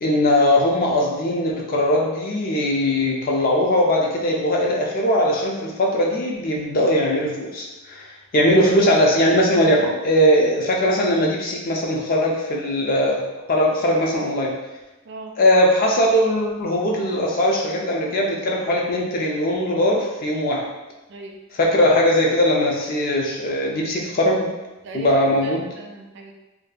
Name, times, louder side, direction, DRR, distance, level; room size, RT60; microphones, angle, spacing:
voice 1, 0.0-8.1 8.3-13.2 13.5-14.6 15.4-20.7 21.5-24.5 24.9-25.7, left 1 dB, 40° left, -1 dB, 0.4 m, -20 dB
voice 2, 21.1-21.4 24.8-26.3, right 3 dB, 55° right, 2 dB, 0.3 m, -38 dB
2.6 x 2.3 x 2.2 m, 1.1 s
head